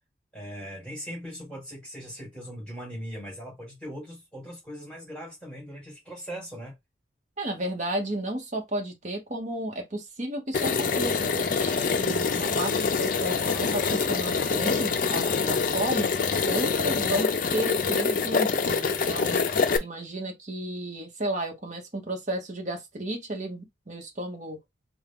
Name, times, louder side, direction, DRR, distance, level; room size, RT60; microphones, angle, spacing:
voice 1, 0.3-6.8, equal, 5° left, 2.3 m, -40 dB
voice 2, 7.4-16.1 16.4-19.4 19.8-24.6, right 1 dB, 40° right, 1.0 m, -33 dB
sound 1, 10.5-19.8, left 5 dB, 45° left, 0.4 m, -25 dB
3.6 x 2.3 x 3.6 m
head